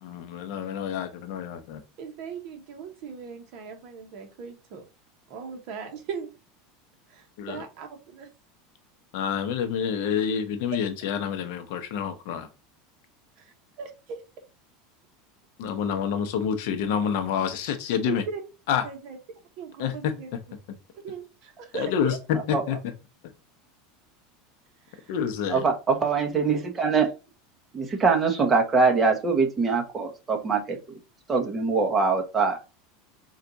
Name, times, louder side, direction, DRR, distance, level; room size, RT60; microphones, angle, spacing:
voice 1, 0.0-1.8 7.4-7.6 9.1-12.5 15.6-18.2 18.7-18.9 19.8-20.1 21.7-22.8 25.1-25.6, left 8 dB, 60° left, 9 dB, 0.7 m, -28 dB
voice 2, 2.0-4.8 5.3-6.3 7.1-8.3 10.7-10.8 13.4-14.2 18.1-18.4 18.8-19.2 19.6-20.3 20.9-22.2 24.9-25.0 25.4-25.6, right 6 dB, 45° right, 4 dB, 1.1 m, -38 dB
voice 3, 25.5-27.1 27.7-31.0 31.3-32.6, right 4 dB, 15° right, 3 dB, 0.9 m, -23 dB
4.5 x 2.4 x 3.9 m, 0.30 s
supercardioid pair, 170°, 0 cm